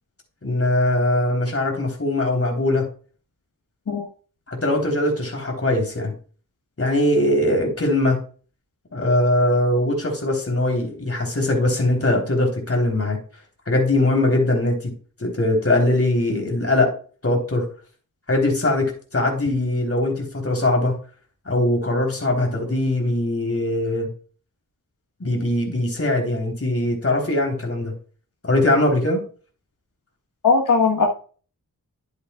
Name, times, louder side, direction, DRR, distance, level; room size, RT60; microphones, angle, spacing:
voice 1, 0.4-2.9 4.5-6.1 6.8-8.2 8.9-13.2 13.7-14.9 15.2-16.9 17.2-17.7 18.3-21.0 21.5-24.1 25.2-27.9 28.4-29.2, left 1 dB, 40° left, 1 dB, 3.6 m, -21 dB
voice 2, 30.4-31.1, left 4 dB, 65° left, 1 dB, 1.3 m, -18 dB
11.5 x 8.1 x 2.4 m, 0.39 s
wide cardioid pair, 75°, 35 cm